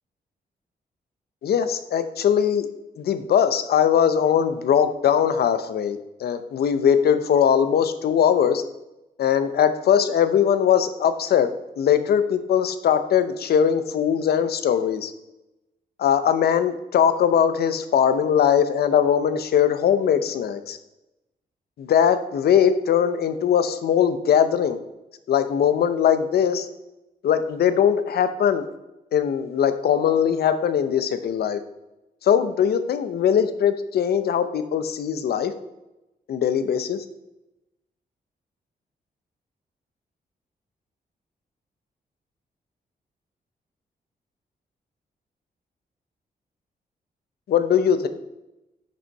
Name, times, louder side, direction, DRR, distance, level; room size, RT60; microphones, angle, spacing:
voice 1, 1.4-2.7 3.0-8.6 9.2-11.5 11.8-15.1 16.0-20.8 21.8-24.8 25.3-26.7 27.2-28.7 29.1-31.6 32.2-35.5 36.3-37.0 47.5-48.1, left 8 dB, 85° left, 10 dB, 0.8 m, -20 dB
10.0 x 6.3 x 4.1 m, 0.95 s
wide cardioid pair, 165°, 16 cm